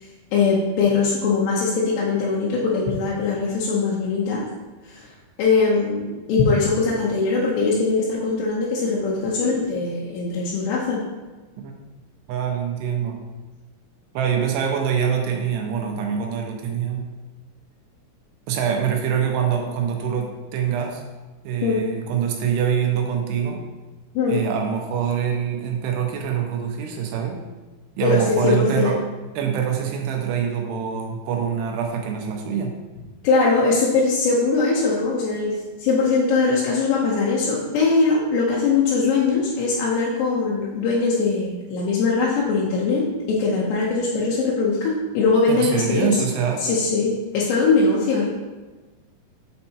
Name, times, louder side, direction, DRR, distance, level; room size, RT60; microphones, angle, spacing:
voice 1, 0.3-4.4 4.9-5.0 5.4-11.0 21.6-21.8 24.1-24.4 28.0-29.0 33.2-46.1 46.6-48.3, left 4 dB, 85° left, -5 dB, 3.0 m, -21 dB
voice 2, 12.3-13.2 14.1-17.1 18.5-21.0 21.4-23.6 24.3-27.4 28.0-29.0 29.4-32.7 45.5-46.8, right 7 dB, 85° right, 1 dB, 2.7 m, -24 dB
8.5 x 4.5 x 2.8 m, 1.2 s
omnidirectional pair, 4.8 m